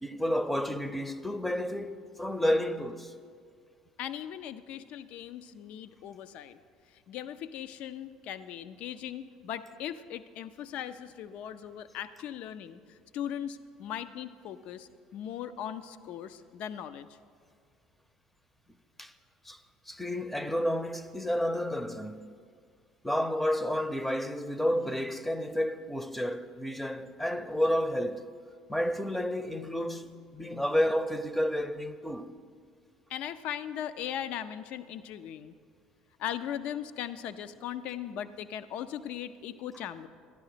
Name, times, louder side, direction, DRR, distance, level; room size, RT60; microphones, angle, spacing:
voice 1, 0.0-3.1 19.0-19.1 19.5-19.6 19.9-22.4 23.0-28.3 28.7-32.3, equal, 5° left, 0.6 m, -30 dB
voice 2, 4.0-6.6 7.1-12.8 13.1-17.1 33.1-35.5 36.2-40.1, left 10 dB, 60° left, 0.5 m, -39 dB
12.5 x 11.0 x 4.9 m
hypercardioid pair, 65°, 2 cm